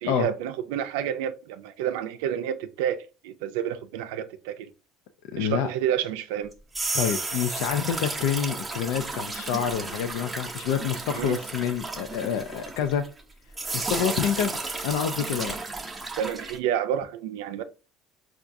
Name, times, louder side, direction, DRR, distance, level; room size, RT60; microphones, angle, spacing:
voice 1, 0.0-4.7 5.4-6.5 11.1-11.4 16.2-17.6, right 9 dB, 90° right, 0.4 m, -29 dB
voice 2, 5.3-5.7 6.9-13.0 13.7-14.5 14.8-15.6, left 8 dB, 80° left, 0.3 m, -27 dB
sound 1, 6.5-13.2 13.5-16.6, right 3 dB, 15° right, 0.6 m, -33 dB
4.6 x 2.4 x 2.5 m
supercardioid pair, 105°, 0 cm